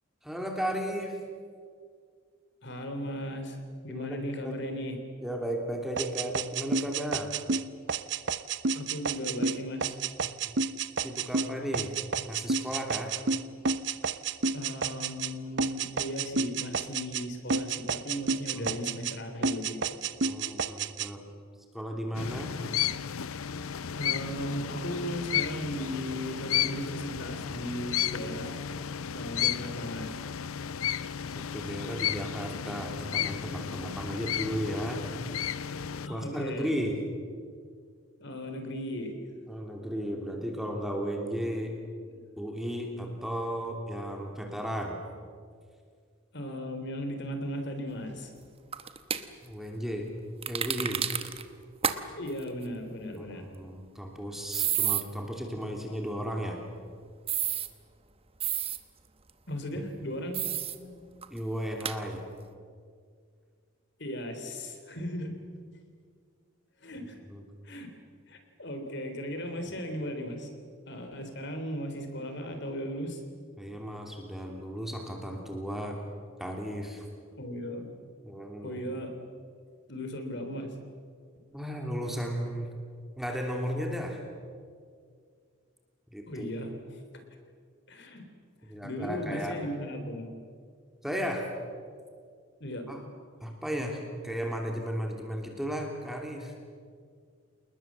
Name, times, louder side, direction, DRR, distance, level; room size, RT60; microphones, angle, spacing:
voice 1, 0.2-1.2 3.9-4.6 5.2-7.4 10.2-10.3 11.0-11.9 12.2-13.1 18.5-18.8 20.2-21.2 21.7-22.5 30.9-31.0 31.3-35.0 36.1-37.0 39.5-41.7 42.4-45.0 49.4-50.1 50.5-51.0 53.2-56.6 59.7-59.8 60.7-61.0 61.3-62.2 67.3-67.4 73.6-76.0 76.4-77.0 78.2-78.8 81.5-82.7 83.2-84.2 86.1-86.5 88.6-89.6 91.0-91.5 92.9-93.0 93.4-96.5, equal, ahead, 1 dB, 2.9 m, -35 dB
voice 2, 2.6-3.6 3.8-5.0 8.7-10.0 14.5-20.0 20.4-20.6 24.0-28.5 29.1-30.2 36.1-36.8 38.2-39.1 42.0-42.2 46.3-48.3 52.2-53.5 59.5-60.4 64.0-65.3 66.8-67.2 67.6-67.9 68.3-70.5 70.9-73.2 77.4-77.9 78.6-79.2 79.9-80.8 86.3-86.7 87.9-88.2 88.8-90.3 92.6-92.9, equal, 55° left, 5 dB, 3.6 m, -36 dB
sound 1, 6.0-15.3 15.6-17.2 17.5-19.2 19.4-21.1, right 4 dB, 55° right, 0.7 m, -30 dB
sound 2, 22.1-36.1, left 9 dB, 85° left, 0.7 m, -33 dB
sound 3, 48.7-49.2 50.4-51.4 51.8-52.0 52.3-52.4 54.5-55.0 57.3-57.7 58.4-58.8 60.3-60.8 61.2-61.3 61.8-62.0, right 9 dB, 25° right, 1.1 m, -29 dB
29.0 x 20.0 x 7.5 m, 2.1 s
head